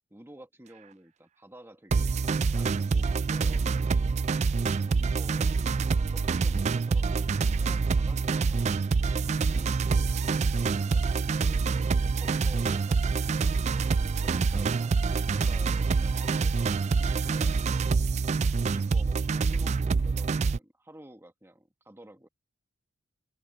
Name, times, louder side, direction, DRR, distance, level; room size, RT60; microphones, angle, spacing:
voice 1, 0.1-2.2 2.5-4.2 4.9-11.1 11.9-13.2 14.0-15.0 15.3-17.7 18.5-22.3, right 1 dB, 10° right, 1.4 m, -51 dB
sound 1, 1.9-20.6, right 4 dB, 35° right, 0.3 m, -26 dB
open air
head